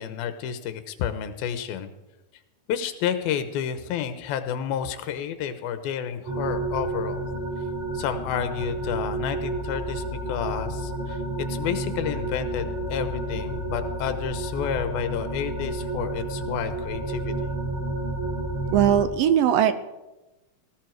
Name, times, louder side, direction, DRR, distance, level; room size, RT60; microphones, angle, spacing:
voice 1, 0.0-1.9 2.7-7.3 7.9-11.2 11.5-17.5, left 9 dB, 90° left, 9 dB, 2.8 m, -30 dB
sound 1, 6.2-19.0, right 2 dB, 60° right, 5.9 m, -30 dB
voice 2, 18.7-19.7, right 10 dB, 75° right, 11 dB, 2.3 m, -19 dB
18.5 x 17.0 x 4.6 m, 1.0 s
omnidirectional pair, 4.2 m